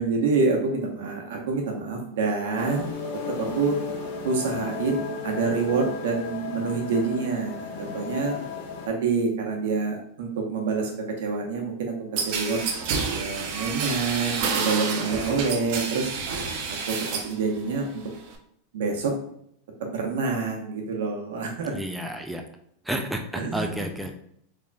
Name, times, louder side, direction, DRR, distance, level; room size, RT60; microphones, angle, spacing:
voice 1, 0.0-3.0 3.3-3.8 4.2-8.4 8.8-12.6 13.1-16.1 16.7-17.0 17.2-18.0 18.7-19.1 19.8-21.7 23.4-23.7, right 4 dB, 80° right, 2 dB, 1.0 m, -27 dB
sound 1, 2.5-8.9, left 4 dB, 55° left, 1.1 m, -34 dB
sound 2, 12.2-17.4 17.7-18.3, right 5 dB, 55° right, 0.7 m, -29 dB
voice 2, 21.7-22.4 22.8-24.1, right 1 dB, 5° right, 3 dB, 0.3 m, -31 dB
3.9 x 3.4 x 2.3 m, 0.69 s
supercardioid pair, 145°, 0 cm